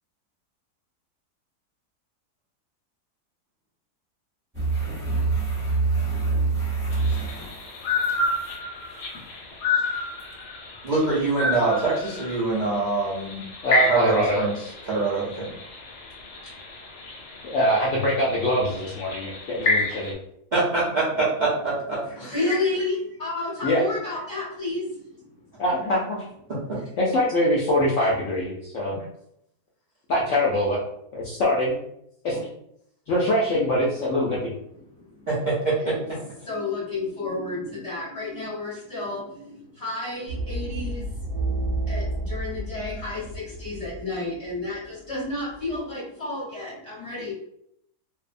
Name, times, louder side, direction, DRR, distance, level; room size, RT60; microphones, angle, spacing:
sound 1, 4.5-8.5 10.2-10.3, right 4 dB, 15° right, 0.7 m, -26 dB
sound 2, 6.9-20.1, left 3 dB, 90° left, 1.1 m, -30 dB
voice 1, 10.8-13.4 13.9-14.5 14.8-15.5 20.5-22.4 26.5-26.8 32.3-32.4 35.3-36.2, right 3 dB, 70° right, -9 dB, 0.4 m, -25 dB
voice 2, 13.6-14.4 17.4-20.1 23.6-23.8 25.6-26.2 27.0-28.9 30.1-30.8 31.1-31.8 32.2-32.4 33.1-34.5, left 1 dB, 65° left, -5 dB, 0.7 m, -23 dB
voice 3, 22.1-25.3 26.8-26.9 34.8-35.3 35.8-36.1 36.4-47.3, left 2 dB, 25° left, -7 dB, 1.0 m, -31 dB
sound 3, 40.3-44.5 45.1-45.8, right 2 dB, 55° right, 0.8 m, -30 dB
2.6 x 2.1 x 2.4 m, 0.74 s
omnidirectional pair, 1.7 m